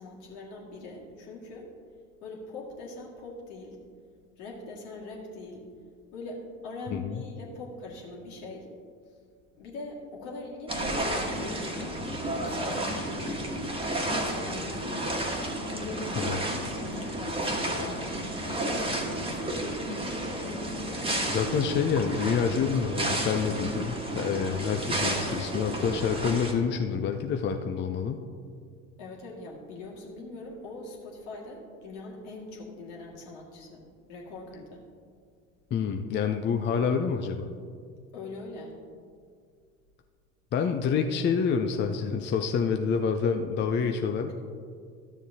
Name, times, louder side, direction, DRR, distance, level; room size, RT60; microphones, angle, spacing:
voice 1, 0.0-1.7 2.2-3.8 4.4-5.7 6.1-8.7 9.5-13.7 14.1-19.8 29.0-33.8 34.1-34.8 38.1-38.7, left 2 dB, 65° left, -2 dB, 2.0 m, -42 dB
voice 2, 6.9-7.2 16.2-16.4 20.9-21.0 21.3-28.2 35.7-37.5 40.5-44.3, left 6 dB, 30° left, 5 dB, 0.5 m, -27 dB
sound 1, 10.7-26.5, right 1 dB, 15° right, 1.4 m, -31 dB
12.5 x 7.2 x 2.7 m, 2.2 s
hypercardioid pair, 70°, 40 cm